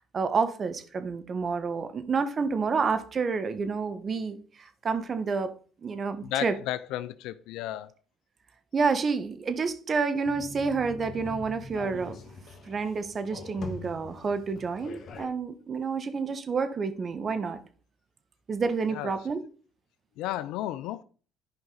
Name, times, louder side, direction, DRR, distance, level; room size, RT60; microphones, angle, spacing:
voice 1, 0.0-5.5 5.8-6.6 8.7-12.2 12.6-17.6 18.5-19.4, right 5 dB, 40° right, 1.2 m, -29 dB
voice 2, 6.2-7.9 18.9-19.1 20.2-21.0, left 14 dB, 75° left, 0.4 m, -33 dB
sound 1, 10.2-15.3, left 3 dB, 55° left, 1.5 m, -43 dB
11.5 x 5.2 x 3.9 m
supercardioid pair, 75°, 0 cm